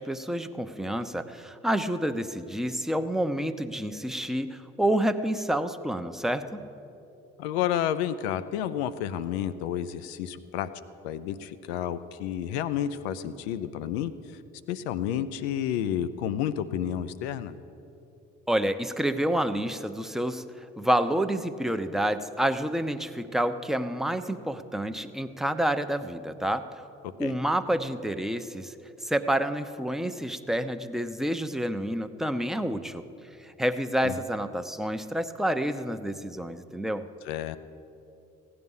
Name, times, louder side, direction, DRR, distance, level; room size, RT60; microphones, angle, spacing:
voice 1, 0.0-6.6 18.5-26.6 27.2-28.7 29.0-33.0 33.4-37.1, right 1 dB, ahead, 8 dB, 0.7 m, -28 dB
voice 2, 7.4-10.7 11.0-14.1 14.7-17.5 27.2-27.3 34.0-34.2 37.3-37.6, left 10 dB, 90° left, 13 dB, 0.5 m, -30 dB
16.0 x 9.7 x 5.5 m, 2.9 s
hypercardioid pair, 50°, 31 cm